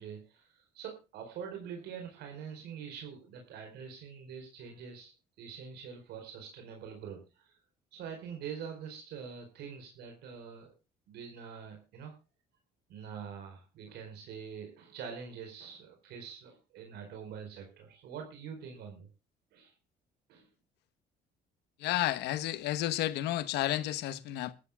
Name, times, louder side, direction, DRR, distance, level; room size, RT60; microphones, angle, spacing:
voice 1, 0.0-5.1 5.4-7.5 7.9-10.7 11.1-12.1 12.9-19.1 19.5-19.7 20.3-20.5, right 7 dB, 80° right, 4.5 m, -45 dB
voice 2, 21.8-24.5, left 14 dB, 85° left, 1.1 m, -31 dB
22.5 x 13.5 x 2.3 m
cardioid pair, 110°, 17 cm